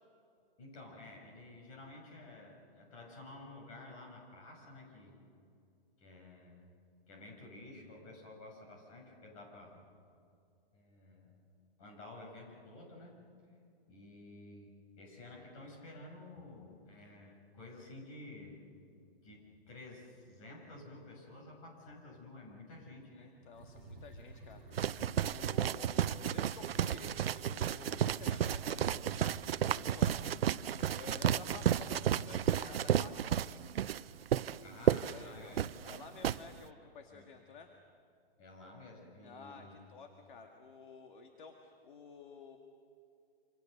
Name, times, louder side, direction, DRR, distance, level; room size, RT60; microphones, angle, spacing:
voice 1, 0.6-5.2 6.0-6.6 7.1-9.8 10.7-11.4 11.8-13.2 13.9-18.6 19.2-23.5 34.6-36.0 37.1-37.3 38.4-39.8, left 2 dB, 35° left, 0 dB, 6.4 m, -52 dB
voice 2, 23.1-24.7 25.2-30.3 30.8-33.4 35.0-35.6 35.9-37.7 39.2-42.6, left 5 dB, 55° left, 4 dB, 2.0 m, -52 dB
sound 1, 23.5-32.5, right 2 dB, 5° right, 3.0 m, -51 dB
sound 2, 24.7-36.4, right 10 dB, 75° right, 0.7 m, -32 dB
28.0 x 27.0 x 6.6 m, 2.5 s
hypercardioid pair, 170°, 30 cm